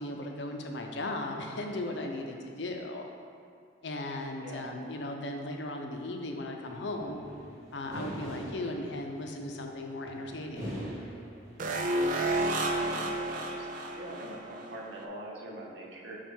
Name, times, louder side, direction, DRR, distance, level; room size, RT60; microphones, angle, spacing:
voice 1, 0.0-3.0 3.8-7.2 7.7-10.8, left 1 dB, 70° left, 3 dB, 0.6 m, -37 dB
sound 1, 6.7-11.6, right 1 dB, 20° right, 1.2 m, -43 dB
sound 2, 11.6-14.8 15.0-15.1, right 1 dB, 45° right, 0.5 m, -31 dB
voice 2, 12.7-16.2, right 1 dB, 75° right, -2 dB, 1.0 m, -43 dB
7.2 x 2.4 x 5.3 m, 2.4 s
head